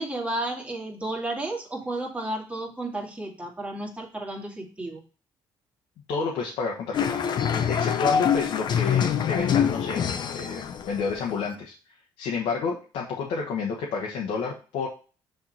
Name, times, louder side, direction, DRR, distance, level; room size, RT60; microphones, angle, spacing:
voice 1, 0.0-5.0, right 2 dB, 15° right, 0 dB, 1.9 m, -32 dB
voice 2, 6.1-7.2 7.7-10.0 10.3-11.7 12.2-14.9, left 5 dB, 80° left, -1 dB, 1.2 m, -30 dB
sound 1, 6.9-11.5, left 8 dB, 55° left, 0.7 m, -25 dB
6.3 x 3.6 x 4.3 m, 0.36 s
cardioid pair, 95°, 9 cm